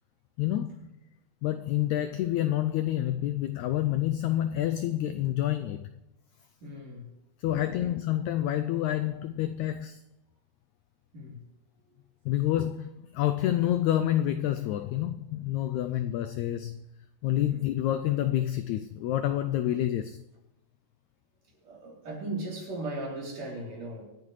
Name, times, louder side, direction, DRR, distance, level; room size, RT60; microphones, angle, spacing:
voice 1, 0.4-0.9 1.4-5.9 7.4-10.0 12.3-16.8 17.2-20.2, left 12 dB, 90° left, 9 dB, 1.6 m, -28 dB
voice 2, 6.6-7.1 7.5-7.9 11.1-11.4 11.9-12.0 17.5-17.6 21.6-24.0, right 2 dB, 50° right, -3 dB, 4.8 m, -38 dB
25.0 x 9.4 x 3.2 m, 1.0 s
omnidirectional pair, 3.9 m